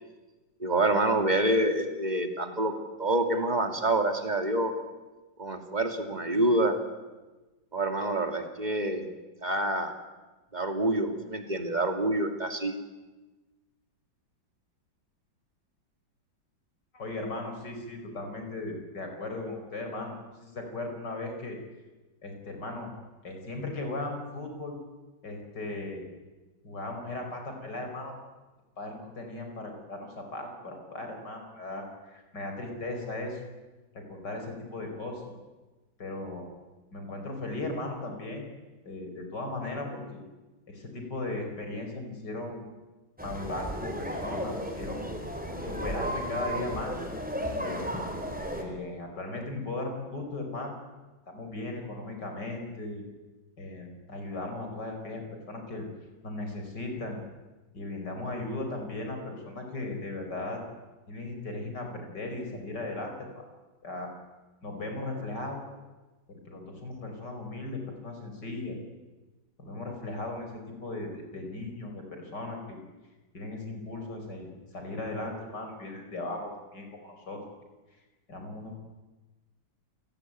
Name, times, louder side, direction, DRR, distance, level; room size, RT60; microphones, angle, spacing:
voice 1, 0.6-2.7 3.0-4.7 5.4-6.7 7.7-9.1 9.4-9.9 10.5-12.7, right 1 dB, 20° right, 5 dB, 2.6 m, -27 dB
voice 2, 16.9-21.6 22.2-22.9 23.2-24.8 25.2-26.0 26.6-28.1 28.8-33.4 33.9-35.3 36.0-36.5 36.9-38.5 38.8-40.2 40.7-42.7 43.2-45.1 45.7-46.9 47.6-47.8 48.5-50.7 51.3-53.0 53.6-55.2 55.5-55.9 56.2-57.2 57.7-60.6 61.1-63.4 63.8-64.1 64.6-65.6 66.3-68.8 69.6-72.8 73.3-74.5 74.7-77.4 78.3-78.8, left 2 dB, 60° left, 4 dB, 5.8 m, -37 dB
sound 1, 43.2-48.6, equal, 5° right, 3.6 m, -34 dB
29.0 x 18.0 x 9.4 m, 1.2 s
omnidirectional pair, 2.1 m